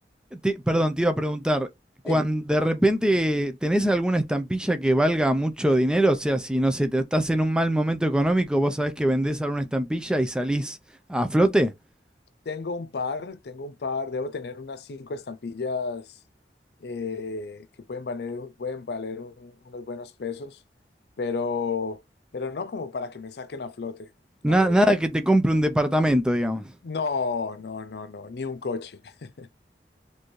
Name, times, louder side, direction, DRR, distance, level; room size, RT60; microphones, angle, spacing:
voice 1, 0.3-1.7 2.0-10.8 11.1-11.7 24.4-26.6, right 1 dB, 5° right, 0.5 m, -22 dB
voice 2, 12.5-16.2 16.8-20.6 21.2-22.0 22.3-24.1 24.4-24.9 26.8-29.5, left 4 dB, 70° left, 0.5 m, -32 dB
4.3 x 2.7 x 3.1 m
head